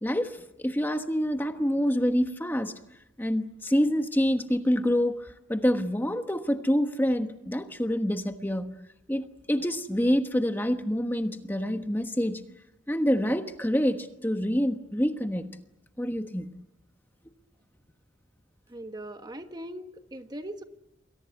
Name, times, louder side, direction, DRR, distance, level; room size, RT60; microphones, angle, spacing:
voice 1, 0.0-2.7 3.2-8.8 9.1-12.4 12.9-15.6 16.0-16.5, equal, 10° left, 1.2 m, -27 dB
voice 2, 18.7-20.6, right 1 dB, 20° right, 1.3 m, -40 dB
28.5 x 22.0 x 8.2 m
head